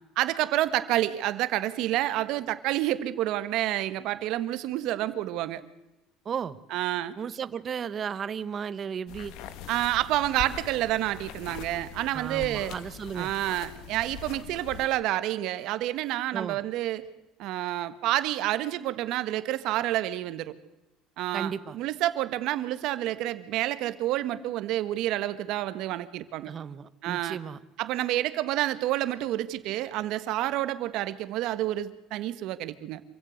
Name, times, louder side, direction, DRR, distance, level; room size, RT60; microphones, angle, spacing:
voice 1, 0.1-5.6 6.7-7.1 9.7-12.7 13.1-17.1 17.4-20.5 21.2-26.5 27.0-27.4 27.8-33.0, right 14 dB, 60° right, 13 dB, 1.4 m, -29 dB
voice 2, 6.2-6.6 7.2-9.3 12.1-13.3 16.3-16.6 21.3-21.8 26.4-27.6, right 7 dB, 30° right, 15 dB, 0.9 m, -34 dB
sound 1, 9.1-14.9, left 9 dB, 65° left, 1.7 m, -42 dB
26.5 x 16.0 x 6.5 m, 0.99 s
cardioid pair, 160°, 0 cm